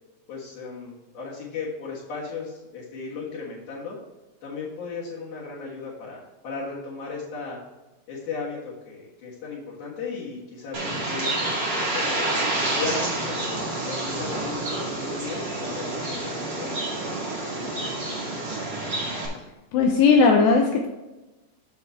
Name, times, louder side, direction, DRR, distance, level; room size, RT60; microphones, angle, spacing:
voice 1, 0.3-4.0 4.4-7.6 8.1-12.4 12.8-18.4, left 4 dB, 60° left, -8 dB, 2.8 m, -36 dB
Bird, 10.7-19.3, right 2 dB, 50° right, 1.2 m, -28 dB
voice 2, 19.7-20.9, left 4 dB, 85° left, 2 dB, 2.4 m, -17 dB
8.5 x 6.9 x 3.5 m, 1.1 s
omnidirectional pair, 5.6 m